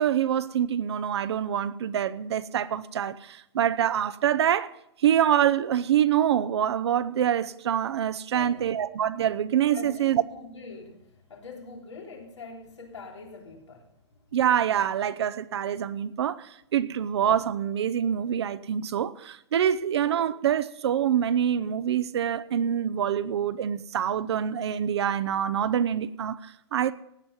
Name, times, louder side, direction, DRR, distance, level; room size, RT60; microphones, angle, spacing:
voice 1, 0.0-4.7 5.0-10.2 14.3-26.9, right 9 dB, 65° right, 0.7 m, -25 dB
voice 2, 8.3-8.7 9.7-14.3, left 4 dB, 90° left, 3.4 m, -44 dB
16.5 x 9.3 x 5.6 m
hypercardioid pair, 145°, 15 cm